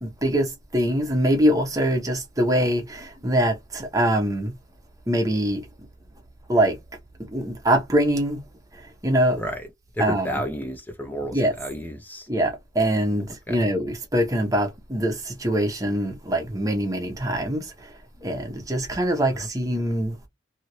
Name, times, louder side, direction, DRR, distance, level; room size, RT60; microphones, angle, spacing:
voice 1, 0.0-4.5 5.1-5.7 6.5-6.8 7.3-8.4 8.7-9.4 10.0-10.5 11.3-11.5 12.3-17.9 18.2-20.3, right 1 dB, 20° right, 0.8 m, -23 dB
voice 2, 10.1-12.2 13.5-13.6, equal, 10° left, 0.6 m, -31 dB
2.8 x 2.6 x 3.0 m
head